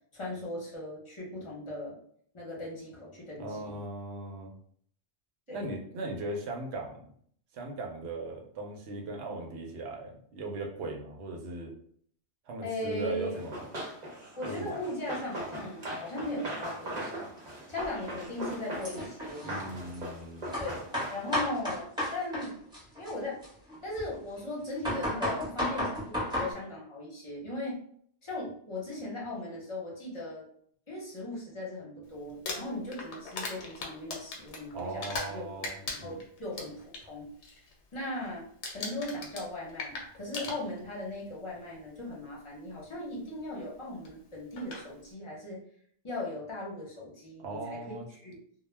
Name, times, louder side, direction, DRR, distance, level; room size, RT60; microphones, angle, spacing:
voice 1, 0.1-2.0 2.3-3.8 5.5-5.7 12.6-13.4 14.4-17.3 17.7-19.5 20.6-22.6 23.0-23.4 23.8-27.8 28.2-30.5 30.9-37.3 37.9-38.4 38.7-45.6 46.0-48.4, left 1 dB, 30° left, -5 dB, 0.7 m, -38 dB
voice 2, 3.4-4.5 5.5-7.1 7.5-11.7 12.5-13.7 14.4-14.7 19.4-20.5 34.7-36.2 47.4-48.0, right 2 dB, 75° right, 1 dB, 0.8 m, -38 dB
Run, 13.3-21.5, right 1 dB, 45° right, 0.7 m, -40 dB
sound 1, 17.8-17.9 18.8-20.0 20.5-22.5 22.7-24.2 24.6-26.5, left 1 dB, 5° right, 0.7 m, -33 dB
Crumpling crinkling, 32.3-35.4 35.6-37.0 37.4-37.7 38.0-38.3 38.6-41.0 42.0-42.1 44.0-44.1 44.6-44.8, left 3 dB, 85° left, 0.9 m, -38 dB
2.1 x 2.1 x 3.1 m, 0.62 s
omnidirectional pair, 1.1 m